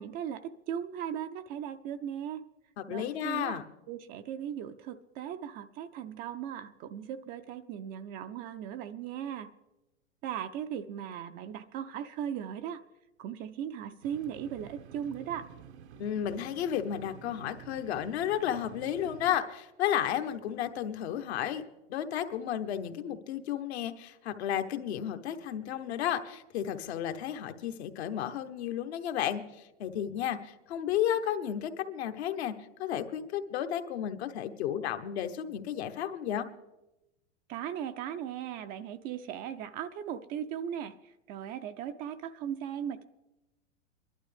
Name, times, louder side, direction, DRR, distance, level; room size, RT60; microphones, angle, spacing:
voice 1, 0.0-2.4 2.9-3.6 3.9-9.5 10.2-12.8 13.2-15.5 37.5-43.0, right 9 dB, 25° right, 10 dB, 0.4 m, -38 dB
voice 2, 2.8-3.6 16.0-21.6 21.9-32.5 32.8-36.5, left 10 dB, 65° left, 8 dB, 1.0 m, -33 dB
sound 1, 14.0-19.4, right 7 dB, 70° right, 0.8 m, -50 dB
22.5 x 11.5 x 3.4 m, 0.99 s
hypercardioid pair, 125°, 34 cm